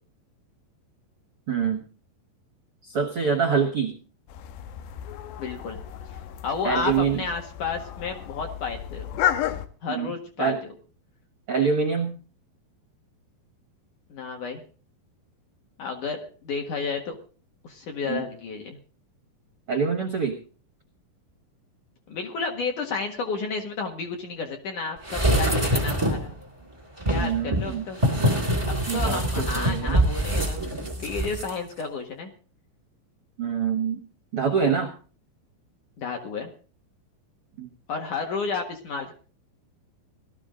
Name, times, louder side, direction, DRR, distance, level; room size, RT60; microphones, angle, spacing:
voice 1, 1.5-1.8 2.8-3.9 6.6-7.2 9.9-10.1 10.4-10.6 11.5-12.2 18.1-18.2 19.7-20.4 27.2-27.9 28.9-30.0 33.4-34.0 34.3-34.9 37.6-37.7, right 6 dB, 65° right, 5 dB, 1.4 m, -25 dB
sound 1, 4.3-9.7, left 11 dB, 80° left, 3.1 m, -32 dB
voice 2, 5.4-5.8 6.1-9.1 9.8-10.7 14.1-14.6 15.8-17.1 17.6-18.8 22.1-26.4 27.1-28.0 28.6-32.3 36.0-36.5 37.9-39.1, left 5 dB, 55° left, 3 dB, 2.6 m, -32 dB
sound 2, 25.0-26.3 27.0-31.5 31.8-31.9, right 1 dB, 15° right, 1.1 m, -24 dB
18.5 x 13.0 x 3.8 m, 0.38 s
omnidirectional pair, 5.1 m